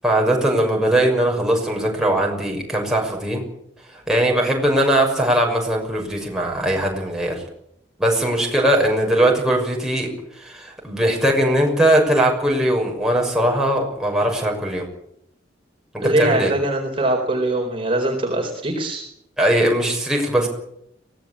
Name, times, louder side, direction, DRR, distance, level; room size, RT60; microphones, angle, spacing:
voice 1, 0.0-3.4 4.1-7.4 8.0-10.1 10.4-14.8 16.0-16.5 19.4-20.5, right 1 dB, 5° right, -1 dB, 6.4 m, -20 dB
voice 2, 16.0-19.0, right 1 dB, 30° right, 2 dB, 4.2 m, -22 dB
23.5 x 18.0 x 8.7 m, 0.74 s
head